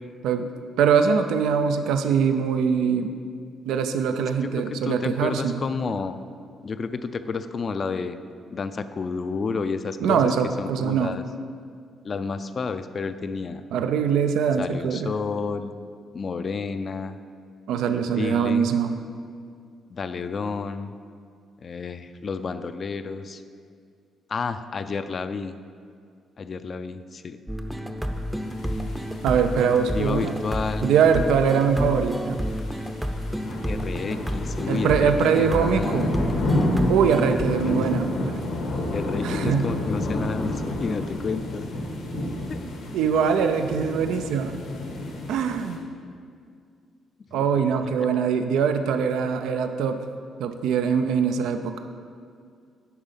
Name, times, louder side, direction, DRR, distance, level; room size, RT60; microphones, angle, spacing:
voice 1, 0.8-3.1 3.7-5.6 10.0-11.1 13.7-15.1 17.7-18.9 29.2-30.3 30.8-32.4 34.7-36.1 36.9-38.5 39.2-39.7 42.1-42.3 42.9-44.6 45.3-45.8 47.3-50.0 50.4-51.8, right 6 dB, 85° right, 8 dB, 0.4 m, -22 dB
voice 2, 4.4-6.2 6.6-8.2 8.5-10.3 10.6-11.2 12.0-13.6 14.6-15.7 16.1-17.2 18.1-18.7 19.9-20.9 21.6-23.4 24.3-25.6 26.4-27.4 29.9-30.9 33.7-36.2 37.6-37.9 38.9-41.7 42.3-42.6 47.3-47.5 48.1-48.3, left 4 dB, 45° left, 11 dB, 0.4 m, -31 dB
sound 1, 27.5-37.5, equal, 5° right, 0.6 m, -30 dB
sound 2, 28.6-45.8, left 1 dB, 85° left, 1.4 m, -31 dB
10.0 x 4.0 x 5.6 m, 2.2 s
cardioid pair, 90°, 0 cm